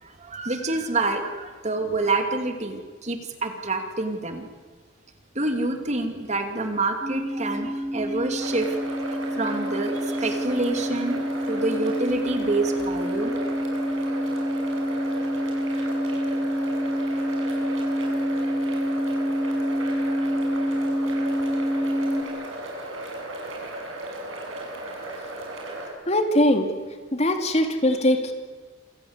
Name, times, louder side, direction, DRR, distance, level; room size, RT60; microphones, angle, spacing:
voice 1, 0.0-4.5 5.3-8.8 9.4-11.2 11.5-13.3, right 2 dB, 35° right, 5 dB, 2.7 m, -27 dB
sound 1, 7.0-22.2, equal, 20° right, 4.2 m, -27 dB
sound 2, 8.4-25.9, right 1 dB, 70° right, 7.5 m, -35 dB
voice 2, 26.1-26.7 27.1-28.3, left 1 dB, 30° left, 6 dB, 2.8 m, -21 dB
27.5 x 26.0 x 8.2 m, 1.5 s
head